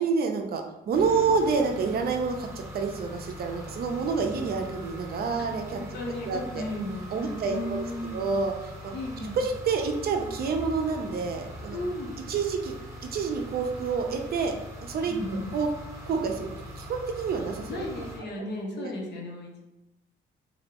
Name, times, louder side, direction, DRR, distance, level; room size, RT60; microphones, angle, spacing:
voice 1, 0.0-5.8 6.3-6.6 7.1-7.8 8.1-8.5 8.8-8.9 9.4-11.8 12.3-12.7 13.1-14.5 14.8-15.7 16.1-16.5 16.8-18.0 18.8-18.9, right 5 dB, 50° right, 4 dB, 0.4 m, -28 dB
sound 1, 0.9-18.2, equal, 15° right, 0.7 m, -42 dB
voice 2, 5.8-8.2 8.9-9.4 11.7-12.1 15.1-15.5 17.7-19.6, left 1 dB, 60° left, -1 dB, 0.7 m, -35 dB
2.6 x 2.1 x 2.8 m, 0.98 s
cardioid pair, 90°, 20 cm